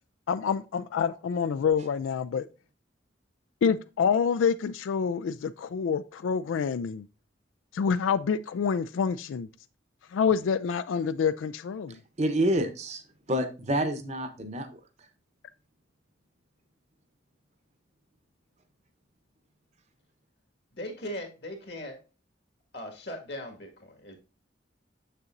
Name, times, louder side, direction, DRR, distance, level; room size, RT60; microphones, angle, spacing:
voice 1, 0.3-2.4 3.6-7.0 7.7-9.5 10.1-12.0, left 6 dB, 85° left, 0.3 m, -27 dB
voice 2, 11.9-13.0 13.3-14.8, right 1 dB, 35° right, 0.8 m, -28 dB
voice 3, 20.7-22.0 22.7-24.2, left 1 dB, 60° left, 1.8 m, -39 dB
7.1 x 6.7 x 2.5 m
head